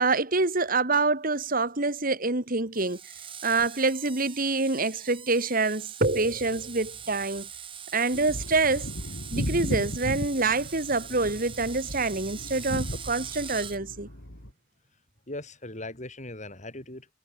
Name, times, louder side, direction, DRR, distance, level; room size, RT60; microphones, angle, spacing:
voice 1, 0.0-3.0 3.4-7.5 7.9-8.9 9.3-14.1, right 3 dB, 50° right, 2.5 m, -26 dB
Screech, 2.7-13.8, right 8 dB, 30° right, 2.9 m, -42 dB
sound 1, 8.1-14.5, equal, 85° left, 6.0 m, -36 dB
voice 2, 15.3-17.1, left 1 dB, 40° left, 6.2 m, -39 dB
head